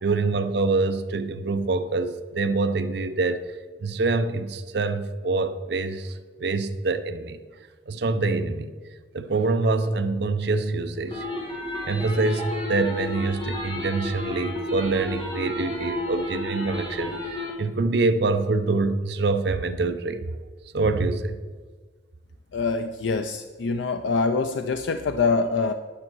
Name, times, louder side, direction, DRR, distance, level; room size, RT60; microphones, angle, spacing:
voice 1, 0.0-3.5 3.8-7.4 7.9-8.7 9.1-11.3 11.9-17.2 17.6-20.3 20.7-21.4, right 3 dB, 65° right, 10 dB, 0.6 m, -25 dB
sound 1, 11.1-17.5, left 1 dB, 25° left, 1.7 m, -32 dB
voice 2, 22.5-25.7, left 4 dB, 80° left, 8 dB, 0.5 m, -25 dB
9.6 x 8.7 x 4.6 m, 1.5 s
head